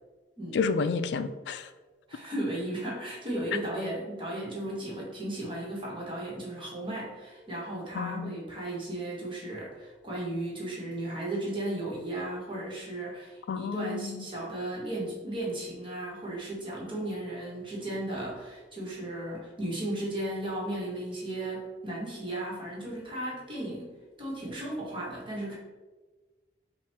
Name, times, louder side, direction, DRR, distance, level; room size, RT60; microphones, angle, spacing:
voice 1, 0.5-1.7 8.0-8.3 13.5-14.2, left 5 dB, 70° left, 11 dB, 0.3 m, -30 dB
voice 2, 2.1-23.9 24.2-25.5, right 1 dB, 30° right, -5 dB, 1.3 m, -35 dB
5.6 x 2.4 x 3.4 m, 1.3 s
head